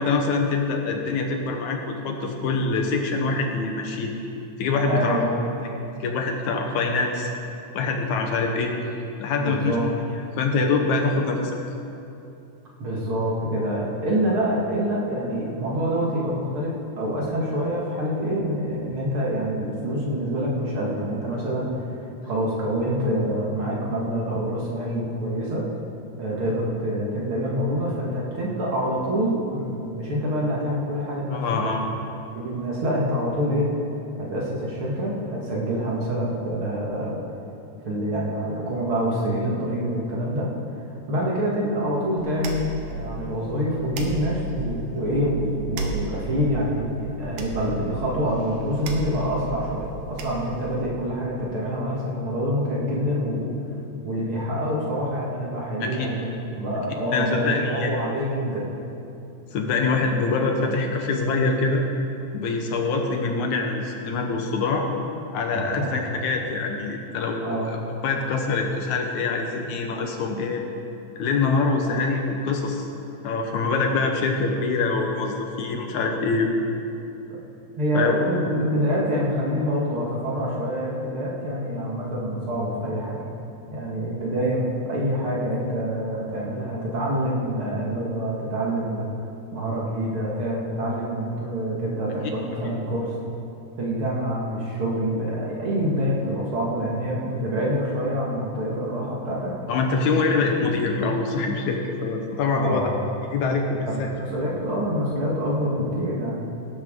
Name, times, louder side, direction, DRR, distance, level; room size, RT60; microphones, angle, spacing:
voice 1, 0.0-4.1 4.6-5.2 5.6-5.7 6.0-7.3 7.7-8.7 9.2-9.8 10.4-11.6 31.3-31.9 55.8-56.1 57.1-57.9 59.5-61.8 62.3-64.9 65.3-67.8 68.0-70.6 71.2-72.9 73.2-76.5 77.9-78.1 92.2-92.3 99.7-102.9 103.3-104.1, left 4 dB, 70° left, 3 dB, 2.2 m, -24 dB
voice 2, 4.9-5.5 9.3-9.9 12.8-21.7 22.2-25.7 26.2-31.8 32.4-33.8 34.2-37.2 37.8-40.5 41.1-53.5 54.0-58.7 65.5-65.9 67.4-67.6 71.8-72.0 77.8-83.2 83.7-89.1 89.5-93.1 93.8-99.5 102.5-103.0 103.9-106.4, equal, 50° right, -4 dB, 2.1 m, -26 dB
sound 1, 42.2-50.8, right 3 dB, 75° right, 2.7 m, -34 dB
18.0 x 11.5 x 3.7 m, 2.7 s
omnidirectional pair, 3.7 m